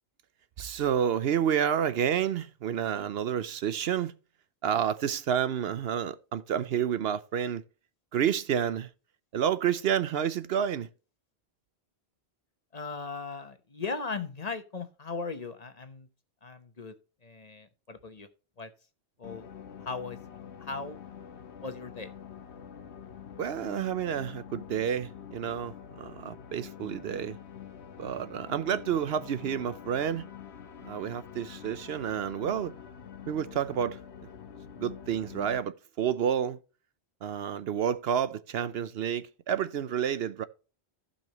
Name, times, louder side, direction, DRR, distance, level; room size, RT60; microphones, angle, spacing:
voice 1, 0.6-4.1 4.6-7.6 8.1-8.9 9.3-10.9 23.4-27.4 28.0-30.3 30.8-32.7 33.3-34.0 34.8-36.6 37.2-40.4, right 8 dB, 70° right, 0.8 m, -29 dB
voice 2, 12.7-16.1 16.4-16.9 17.2-18.3 18.6-18.7 19.2-19.5 19.8-20.2 20.6-21.0 21.6-22.1, left 4 dB, 40° left, 0.9 m, -38 dB
sound 1, 19.2-35.6, left 8 dB, 80° left, 1.2 m, -46 dB
15.0 x 5.6 x 2.9 m
omnidirectional pair, 1.1 m